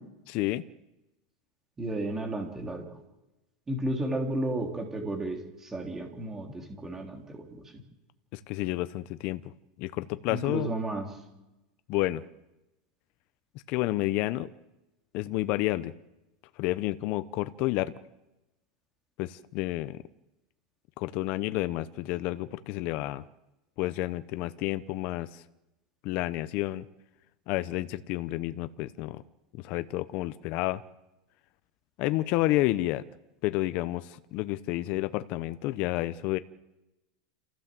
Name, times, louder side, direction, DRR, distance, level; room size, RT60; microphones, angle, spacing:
voice 1, 0.3-0.6 8.3-9.4 9.8-10.7 11.9-12.2 13.7-14.5 15.1-15.9 16.6-17.9 19.2-20.0 21.0-23.2 23.8-25.4 26.0-26.9 27.5-29.2 29.5-30.8 32.0-33.0 33.4-36.4, left 17 dB, 40° left, 13 dB, 0.8 m, -30 dB
voice 2, 1.8-2.9 3.7-7.5 10.3-11.1, right 1 dB, 10° right, 3 dB, 3.3 m, -33 dB
27.5 x 15.5 x 7.6 m, 0.98 s
supercardioid pair, 165°, 3 cm